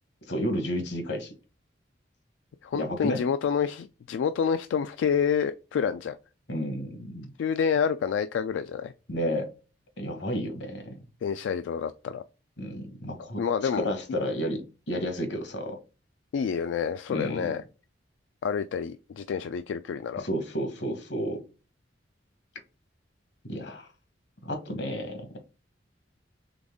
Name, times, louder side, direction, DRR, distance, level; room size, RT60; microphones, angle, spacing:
voice 1, 0.3-1.3 2.7-3.2 6.5-7.3 9.1-9.5 10.0-11.0 12.6-15.8 17.1-17.5 20.2-21.4 23.4-23.9 24.4-25.3, equal, 70° left, 1.1 m, -32 dB
voice 2, 2.6-6.2 7.4-8.9 11.2-12.2 13.4-13.9 16.3-17.6 18.4-20.2, left 7 dB, 90° left, 0.3 m, -28 dB
3.9 x 3.4 x 3.6 m
head